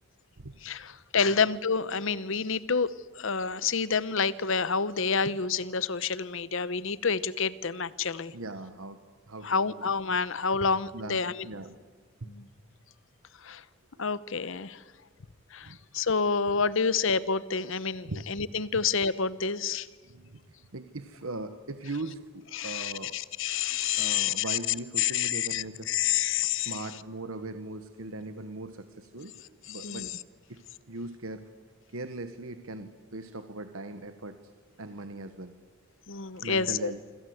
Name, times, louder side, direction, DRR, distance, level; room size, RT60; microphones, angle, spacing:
voice 1, 0.6-8.3 9.4-11.5 12.3-12.4 13.4-13.6 14.0-14.8 15.5-19.9 22.5-24.6 25.0-26.8 29.7-30.1 36.1-36.9, left 6 dB, 60° left, 18 dB, 0.9 m, -28 dB
voice 2, 8.3-9.0 9.3-9.8 10.6-10.7 10.9-11.8 12.2-12.3 15.6-15.8 18.1-18.2 20.0-20.4 20.7-23.2 23.7-25.9 26.6-30.1 30.5-30.6 30.9-31.4 31.9-34.5 34.8-35.5 36.4-37.0, right 2 dB, 70° right, 9 dB, 1.2 m, -40 dB
26.5 x 26.0 x 8.0 m, 1.5 s
head